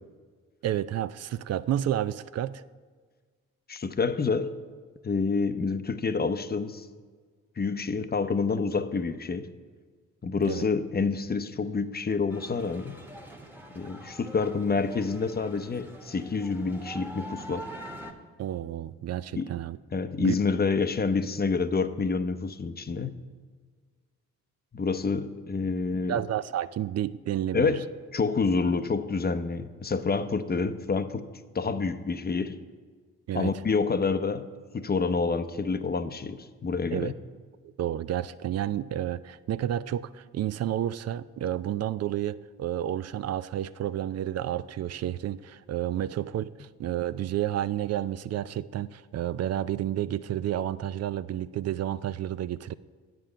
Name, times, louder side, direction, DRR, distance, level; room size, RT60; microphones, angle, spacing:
voice 1, 0.6-2.6 10.5-10.6 18.4-19.8 20.2-20.4 26.1-27.8 33.3-33.5 36.9-37.1 37.8-52.7, right 11 dB, 50° right, 16 dB, 0.4 m, -30 dB
voice 2, 3.7-4.5 5.0-6.9 7.6-9.5 10.2-13.0 13.7-17.7 19.3-19.5 19.9-23.2 24.7-26.2 27.5-31.3 31.5-32.6 33.3-34.5 34.7-37.1, left 4 dB, 30° left, 11 dB, 0.7 m, -28 dB
sound 1, 12.3-18.1, right 1 dB, 5° right, 1.3 m, -44 dB
9.6 x 7.6 x 5.6 m, 1.5 s
supercardioid pair, 50°, 34 cm